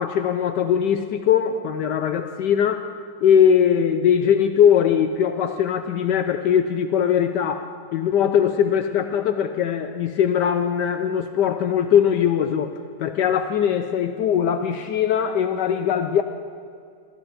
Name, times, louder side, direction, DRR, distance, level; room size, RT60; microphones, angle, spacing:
voice 1, 0.0-2.9 3.2-12.7 13.0-16.2, left 8 dB, 70° left, 8 dB, 1.1 m, -20 dB
21.0 x 14.0 x 4.1 m, 2.2 s
omnidirectional pair, 2.1 m